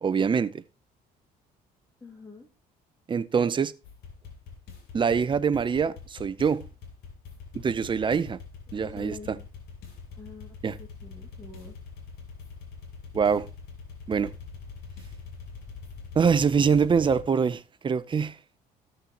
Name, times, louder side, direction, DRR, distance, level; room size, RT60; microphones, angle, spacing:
voice 1, 0.0-0.5 3.1-3.7 4.9-6.7 7.5-8.4 8.7-9.1 10.6-10.7 13.1-13.5 14.1-14.3 16.2-18.3, right 6 dB, 30° right, 0.7 m, -24 dB
voice 2, 2.0-2.5 8.7-9.5 10.1-11.8, left 4 dB, 20° left, 2.3 m, -46 dB
sound 1, 3.8-17.2, left 5 dB, 75° left, 3.2 m, -44 dB
14.0 x 6.7 x 2.9 m
cardioid pair, 110°, 17 cm